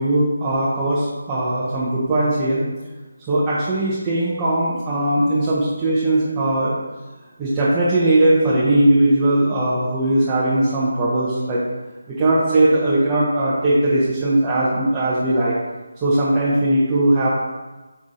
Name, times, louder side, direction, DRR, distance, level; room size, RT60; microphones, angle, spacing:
voice 1, 0.0-2.6 3.3-6.7 7.4-11.6 12.1-15.5 16.0-17.3, right 1 dB, 15° right, -9 dB, 0.7 m, -19 dB
5.5 x 3.5 x 2.6 m, 1.2 s
figure-of-eight pair, 165°, 0 cm